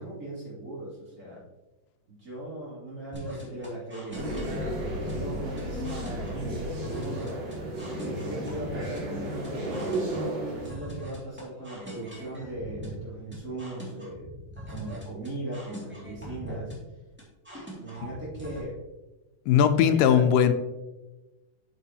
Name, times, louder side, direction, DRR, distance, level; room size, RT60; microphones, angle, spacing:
voice 1, 0.0-1.4 2.1-7.4 8.0-10.0 10.3-14.3 14.7-16.7 17.8-18.8 19.9-20.2, right 1 dB, 30° right, -7 dB, 2.9 m, -38 dB
sound 1, 3.1-18.6, right 1 dB, 5° right, 1.9 m, -42 dB
sound 2, 4.1-10.7, right 1 dB, 55° right, 2.8 m, -33 dB
voice 2, 19.5-20.5, left 8 dB, 90° left, 10 dB, 2.2 m, -19 dB
8.3 x 6.9 x 2.9 m, 1.1 s
omnidirectional pair, 3.7 m